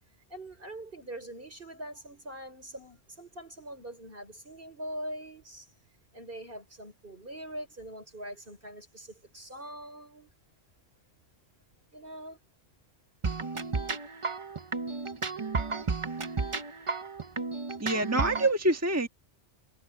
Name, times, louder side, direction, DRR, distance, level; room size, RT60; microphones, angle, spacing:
voice 1, 0.3-5.7 6.1-10.3 11.9-12.4, right 1 dB, 50° right, 5.9 m, -43 dB
sound 1, 13.2-18.5, right 4 dB, 30° right, 0.8 m, -33 dB
voice 2, 17.8-19.1, right 1 dB, 15° right, 1.5 m, -26 dB
omnidirectional pair, 1.2 m